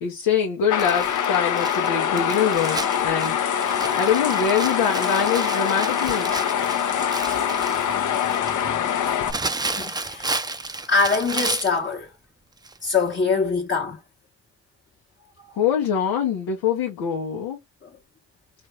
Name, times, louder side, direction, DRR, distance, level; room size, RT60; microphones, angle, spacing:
voice 1, 0.0-3.4 4.0-6.3 15.5-17.6, left 7 dB, 80° left, 0.9 m, -24 dB
sound 1, 0.7-9.3, left 9 dB, 55° left, 0.7 m, -24 dB
Crumpling crinkling, 0.8-11.8 12.6-12.8 13.1-13.2, right 3 dB, 10° right, 0.5 m, -32 dB
voice 2, 7.1-10.5 10.9-12.1 12.8-14.0 15.4-15.5 17.8-17.9, left 4 dB, 30° left, 1.1 m, -26 dB
4.2 x 2.5 x 3.3 m
hypercardioid pair, 45°, 37 cm